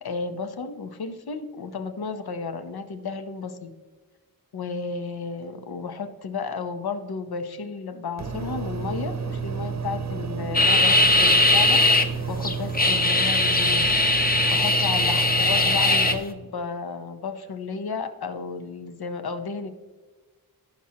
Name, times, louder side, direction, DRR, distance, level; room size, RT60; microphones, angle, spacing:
voice 1, 0.0-3.7 4.5-13.9 14.5-19.7, left 5 dB, 85° left, 8 dB, 0.9 m, -33 dB
sound 1, 8.2-16.2, right 5 dB, 45° right, 0.7 m, -31 dB
sound 2, 10.5-12.0 12.4-16.1, left 2 dB, 25° left, 0.8 m, -20 dB
14.5 x 6.1 x 2.8 m, 1.3 s
wide cardioid pair, 95°, 37 cm